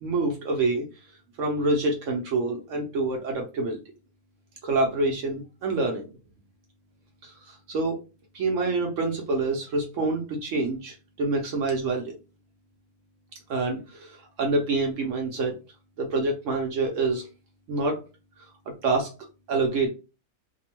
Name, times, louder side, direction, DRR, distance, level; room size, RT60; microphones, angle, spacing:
voice 1, 0.0-0.8 1.4-3.8 4.6-6.1 7.2-8.0 8.3-12.2 13.5-14.1 14.4-15.5 16.0-17.3 17.7-18.0 18.8-19.1 19.5-19.9, right 3 dB, 65° right, 2 dB, 0.9 m, -26 dB
2.8 x 2.1 x 2.9 m, 0.31 s
omnidirectional pair, 1.6 m